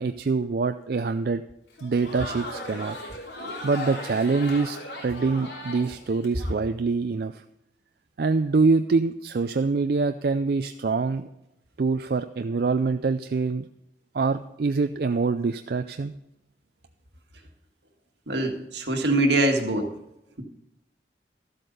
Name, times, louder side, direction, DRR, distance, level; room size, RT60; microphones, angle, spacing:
voice 1, 0.0-1.4 1.8-3.0 3.6-7.4 8.2-11.3 11.8-13.6 14.1-16.1, right 4 dB, 55° right, 9 dB, 0.4 m, -25 dB
Crowd, 1.7-6.5, left 1 dB, 85° left, 3.1 m, -37 dB
voice 2, 18.3-19.9, right 1 dB, 80° right, 4 dB, 1.7 m, -24 dB
13.5 x 7.8 x 5.4 m, 0.88 s
head